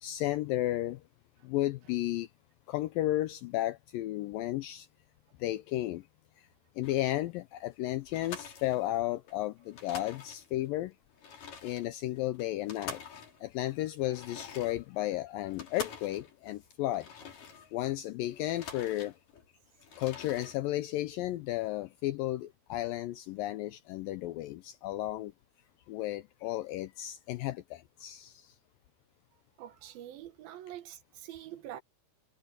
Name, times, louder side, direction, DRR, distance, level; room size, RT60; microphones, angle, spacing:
voice 1, 0.0-1.0 1.4-2.3 2.7-4.9 5.4-6.1 6.4-6.5 6.8-10.9 11.6-13.0 13.4-17.1 17.7-19.1 20.0-25.3 25.9-28.6, left 15 dB, 80° left, 2.1 m, -33 dB
sound 1, 6.8-7.3 7.7-7.8 8.1-9.4 9.6-10.7 11.1-17.9 18.3-19.5 19.8-20.6, left 5 dB, 55° left, 5.4 m, -47 dB
voice 2, 29.6-31.8, right 12 dB, 70° right, 2.8 m, -45 dB
omnidirectional pair, 4.6 m